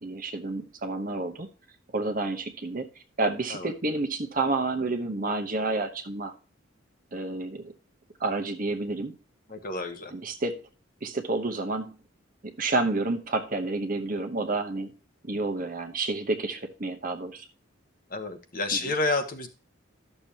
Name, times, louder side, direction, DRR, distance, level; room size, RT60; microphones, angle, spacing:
voice 1, 0.0-1.5 1.9-2.9 3.2-6.3 7.1-7.7 8.2-9.2 10.1-10.6 11.0-11.9 12.4-14.9 15.2-17.4 18.8-18.9, right 2 dB, 45° right, 6 dB, 1.0 m, -29 dB
voice 2, 9.5-10.1 18.1-19.5, left 3 dB, 45° left, 7 dB, 1.1 m, -29 dB
12.0 x 6.8 x 2.9 m, 0.35 s
head